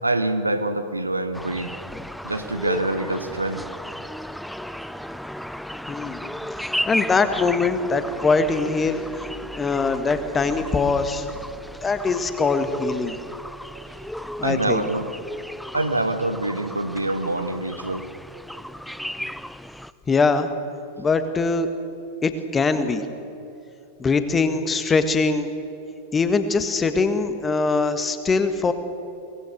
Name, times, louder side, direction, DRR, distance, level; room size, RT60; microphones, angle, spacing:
voice 1, 0.0-1.7 2.2-3.6 14.4-15.1 15.7-18.1, right 2 dB, 85° right, 9 dB, 1.3 m, -25 dB
sound 1, 1.3-19.9, equal, ahead, 0.6 m, -34 dB
voice 2, 5.9-6.2 6.7-9.0 9.5-11.3 11.8-13.2 14.4-14.9 20.1-20.5 21.0-21.7 22.2-23.0 24.0-25.5 26.1-28.7, left 4 dB, 15° left, 9 dB, 1.7 m, -22 dB
23.5 x 20.0 x 6.6 m, 2.8 s
figure-of-eight pair, 90°, 0 cm